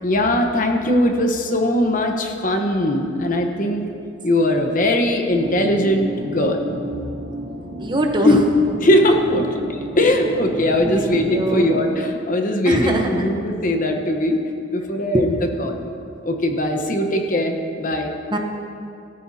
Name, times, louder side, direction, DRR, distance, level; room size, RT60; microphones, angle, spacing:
voice 1, 0.0-3.8 4.2-6.6 8.2-8.4 8.8-15.9 16.2-18.1, left 1 dB, 40° left, 3 dB, 1.0 m, -20 dB
sound 1, 5.4-11.8, right 1 dB, 50° right, 0.8 m, -32 dB
voice 2, 7.8-8.3 10.8-11.7 12.7-13.3 15.1-15.2 18.3-18.4, right 1 dB, 25° right, 2 dB, 0.9 m, -22 dB
17.0 x 13.5 x 2.8 m, 2.5 s
head